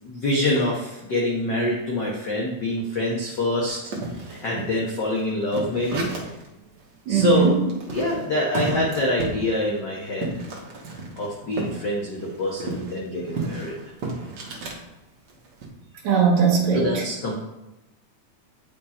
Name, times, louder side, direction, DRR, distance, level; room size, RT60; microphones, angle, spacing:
voice 1, 0.0-3.9 4.3-6.1 7.1-7.5 7.9-10.4 11.2-13.8 16.7-17.4, left 1 dB, 75° left, -3 dB, 1.0 m, -25 dB
sound 1, 3.7-6.5 6.8-6.9 7.2-11.8 12.1-14.8 15.3-15.7, right 2 dB, 55° right, 1.2 m, -33 dB
voice 2, 7.1-7.6 11.6-11.7 14.0-14.5 16.0-17.1, right 6 dB, 70° right, -2 dB, 2.4 m, -21 dB
8.8 x 5.2 x 4.3 m, 0.97 s
omnidirectional pair, 3.5 m